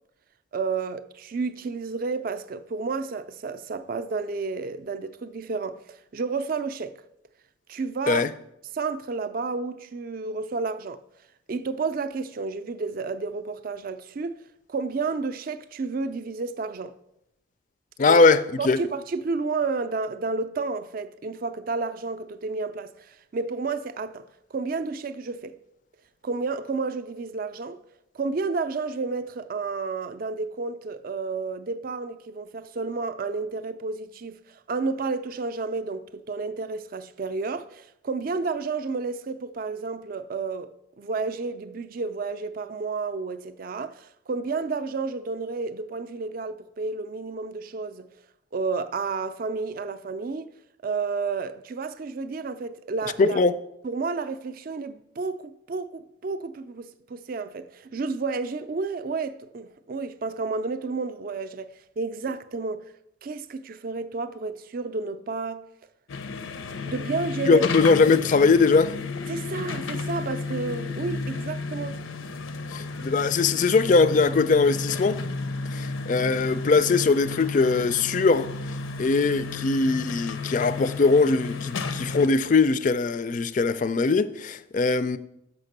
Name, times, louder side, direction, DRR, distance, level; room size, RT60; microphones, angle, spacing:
voice 1, 0.5-6.9 7.7-8.2 8.7-11.0 11.5-14.4 14.7-16.9 18.1-18.2 18.6-24.2 24.5-25.6 26.2-27.8 28.1-48.1 48.5-50.5 50.8-53.4 53.8-62.9 63.2-65.6 66.8-67.6 69.3-72.0, right 4 dB, 45° right, 0.4 m, -31 dB
voice 2, 18.0-18.8 53.2-53.5 67.5-68.9 72.7-75.2 75.7-78.5 79.0-85.2, left 4 dB, 40° left, 0.4 m, -21 dB
sound 1, 66.1-82.3, left 4 dB, 80° left, 0.6 m, -32 dB
6.5 x 6.0 x 6.5 m
head